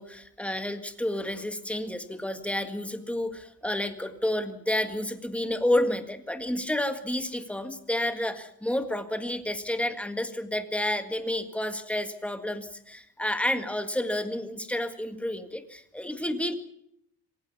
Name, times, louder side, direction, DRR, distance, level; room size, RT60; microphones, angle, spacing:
voice 1, 0.0-16.6, left 1 dB, 5° left, 8 dB, 1.8 m, -30 dB
26.0 x 16.0 x 7.1 m, 0.74 s
cardioid pair, 165°, 39 cm